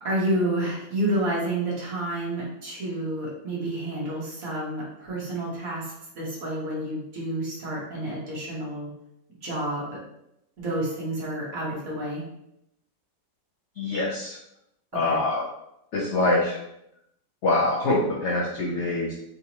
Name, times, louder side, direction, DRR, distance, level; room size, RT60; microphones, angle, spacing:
voice 1, 0.0-8.9 9.4-10.0 10.6-12.2 15.0-15.2, right 1 dB, 50° right, -5 dB, 1.6 m, -29 dB
voice 2, 13.8-14.4 14.9-15.4 15.9-16.6 17.4-19.1, left 2 dB, 85° left, -3 dB, 0.6 m, -24 dB
4.0 x 3.4 x 2.9 m, 0.79 s
omnidirectional pair, 2.0 m